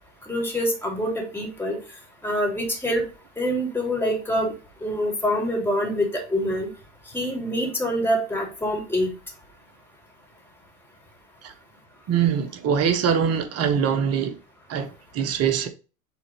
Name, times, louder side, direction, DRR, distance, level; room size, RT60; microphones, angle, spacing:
voice 1, 0.3-1.8 2.2-3.0 3.4-4.5 4.8-6.7 7.1-9.1, equal, 5° left, 3.3 m, -25 dB
voice 2, 12.1-14.3 14.7-15.7, right 7 dB, 35° right, 1.2 m, -23 dB
7.1 x 4.0 x 4.2 m
hypercardioid pair, 100°, 43 cm